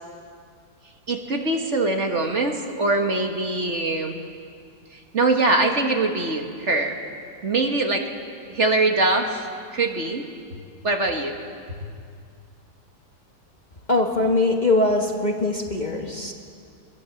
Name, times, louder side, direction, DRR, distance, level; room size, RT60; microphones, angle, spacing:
voice 1, 1.1-4.2 5.1-7.0 7.4-8.1 8.5-9.5 9.7-10.2 10.8-11.3, right 2 dB, 45° right, 3 dB, 1.8 m, -22 dB
voice 2, 13.9-16.3, left 2 dB, 30° left, 2 dB, 1.4 m, -22 dB
22.5 x 22.0 x 7.1 m, 2.3 s
omnidirectional pair, 1.7 m